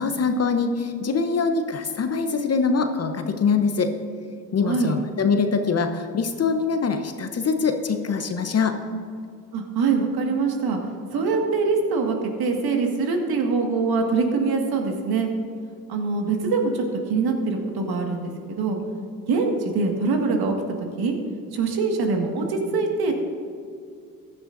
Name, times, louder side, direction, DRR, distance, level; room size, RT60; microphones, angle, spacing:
voice 1, 0.0-3.9 4.5-8.8, left 5 dB, 30° left, 7 dB, 0.9 m, -23 dB
voice 2, 4.6-4.9 9.5-10.8 11.1-15.3 15.9-18.8 19.3-20.6 21.0-21.1 21.5-23.1, right 4 dB, 50° right, 3 dB, 1.9 m, -23 dB
15.5 x 11.0 x 2.6 m, 2.3 s
hypercardioid pair, 60°, 47 cm